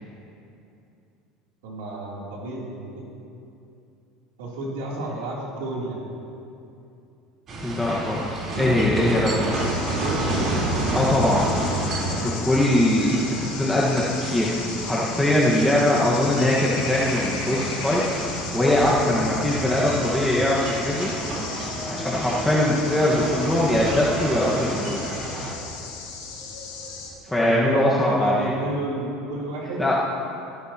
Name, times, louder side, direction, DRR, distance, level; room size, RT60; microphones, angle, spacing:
voice 1, 1.6-3.0 4.4-6.0 9.9-10.4 27.3-29.8, right 2 dB, 80° right, -4 dB, 3.3 m, -31 dB
sound 1, 7.5-25.5, right 1 dB, 45° right, 4.0 m, -30 dB
voice 2, 7.6-9.9 10.9-21.1 21.9-25.0 27.3-28.5 29.8-30.0, left 1 dB, 5° left, -6 dB, 1.6 m, -22 dB
sound 2, 9.5-27.1, left 4 dB, 90° left, 3.5 m, -36 dB
25.5 x 12.0 x 3.0 m, 2.7 s
supercardioid pair, 95°, 0 cm